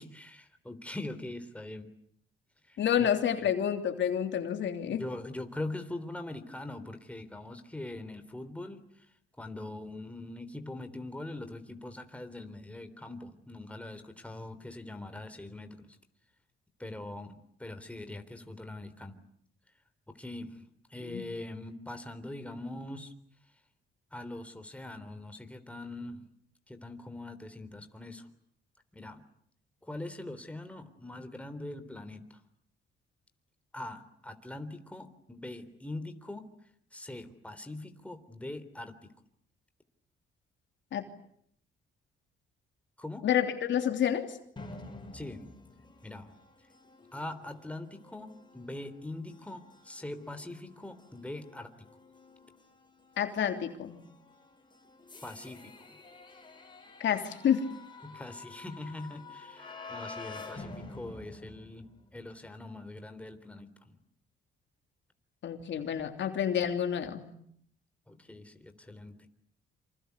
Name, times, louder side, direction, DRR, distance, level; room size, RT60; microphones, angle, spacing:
voice 1, 0.0-1.9 2.7-3.1 3.4-3.5 4.8-9.1 9.4-16.0 16.8-19.2 20.1-23.1 24.1-26.3 26.7-28.3 28.9-29.2 29.8-32.4 33.7-36.5 36.9-39.1 43.0-43.3 45.1-45.5 46.0-46.4 47.1-51.9 55.2-56.0 58.0-64.0 68.1-69.2, left 2 dB, 5° left, 7 dB, 3.6 m, -42 dB
voice 2, 2.8-5.0 21.0-21.2 40.9-41.0 43.2-44.4 53.2-54.0 57.0-57.7 65.4-67.3, left 9 dB, 70° left, 6 dB, 3.2 m, -29 dB
sound 1, 44.6-62.3, left 3 dB, 25° left, 5.7 m, -49 dB
27.5 x 26.5 x 8.3 m, 0.68 s
cardioid pair, 90°, 20 cm